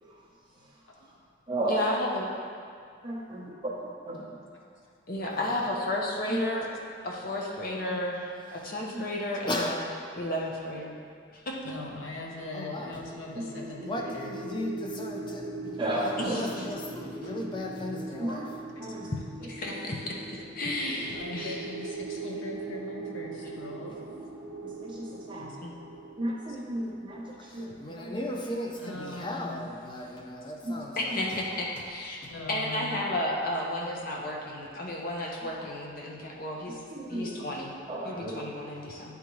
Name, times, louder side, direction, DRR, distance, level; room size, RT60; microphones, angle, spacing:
voice 1, 0.0-1.1 1.5-1.8 3.0-3.5 4.0-4.2 6.3-6.4 7.9-8.0 8.9-9.0 13.4-13.5 13.8-13.9 15.8-16.6 18.2-19.1 19.4-19.7 24.6-25.5 26.2-28.2 30.6-30.8 31.1-31.2 31.5-31.6 35.5-35.7 36.9-37.5 37.9-38.6, right 1 dB, 25° right, -5 dB, 0.8 m, -35 dB
voice 2, 1.7-2.3 5.1-6.7 7.0-9.9 10.2-11.0 11.3-11.7 16.2-16.6 17.2-17.3 19.5-21.7 25.6-25.7 31.0-32.2 32.5-36.8 37.1-37.7 38.0-39.2, left 1 dB, 45° left, -2 dB, 0.7 m, -33 dB
voice 3, 9.5-9.8 12.5-12.9 13.9-15.8 16.3-18.4 27.8-31.2 32.2-32.3, left 1 dB, 25° left, 0 dB, 0.3 m, -36 dB
voice 4, 11.6-14.3 17.0-17.1 18.8-19.0 21.1-24.0 28.7-29.7 30.3-30.5 32.3-33.0 34.7-34.8 35.2-35.3 36.2-36.3 36.7-36.8 39.0-39.1, left 2 dB, 80° left, -1 dB, 0.9 m, -41 dB
sound 1, 12.4-27.4, right 3 dB, 80° right, 0.8 m, -40 dB
9.6 x 3.5 x 3.0 m, 2.3 s
head